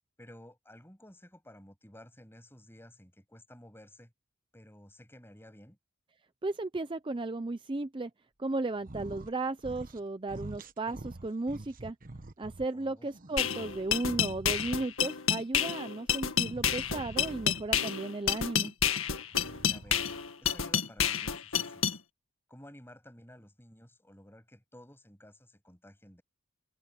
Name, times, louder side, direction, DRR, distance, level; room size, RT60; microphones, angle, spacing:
voice 1, 0.2-4.1 4.5-5.8 12.7-13.1 19.6-20.1 20.4-22.0 22.5-26.2, left 1 dB, 10° left, 7.3 m, -54 dB
voice 2, 6.4-8.1 8.4-12.0 12.4-18.7, right 2 dB, 25° right, 0.5 m, -35 dB
sound 1, 8.8-9.3 9.6-10.0 10.3-12.7 13.1-15.0 16.4-17.8 19.2-20.3, right 2 dB, 40° right, 1.2 m, -46 dB
sound 2, 13.4-22.0, left 8 dB, 75° left, 1.9 m, -29 dB
head